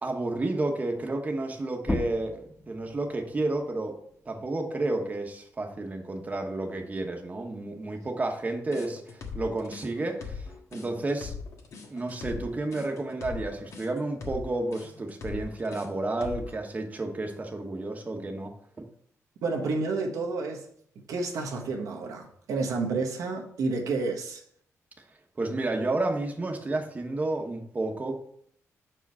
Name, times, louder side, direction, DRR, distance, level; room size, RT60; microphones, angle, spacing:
voice 1, 0.0-2.4 2.7-3.9 4.3-10.4 10.7-11.3 11.9-18.9 25.4-28.2, right 2 dB, 30° right, 1.1 m, -31 dB
sound 1, 1.8-7.0 7.4-9.2, left 1 dB, 15° left, 0.9 m, -39 dB
sound 2, 8.7-16.6, left 5 dB, 70° left, 1.5 m, -40 dB
voice 2, 19.4-20.7 21.1-24.4, right 3 dB, 90° right, 1.2 m, -30 dB
6.8 x 4.9 x 4.7 m
cardioid pair, 100°, 6 cm